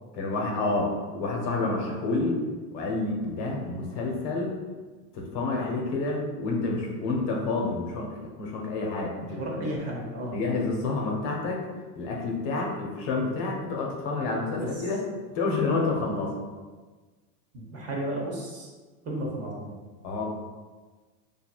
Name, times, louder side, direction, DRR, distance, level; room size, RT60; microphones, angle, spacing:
voice 1, 0.1-2.4 2.7-4.6 5.1-9.7 10.3-11.7 11.9-15.0 15.3-16.3 20.0-20.3, left 3 dB, 50° left, 0 dB, 0.9 m, -29 dB
voice 2, 9.2-10.4 14.6-14.7 17.5-18.7 19.0-19.7, right 1 dB, 30° right, -2 dB, 0.9 m, -33 dB
4.4 x 2.7 x 2.4 m, 1.3 s
hypercardioid pair, 110°, 46 cm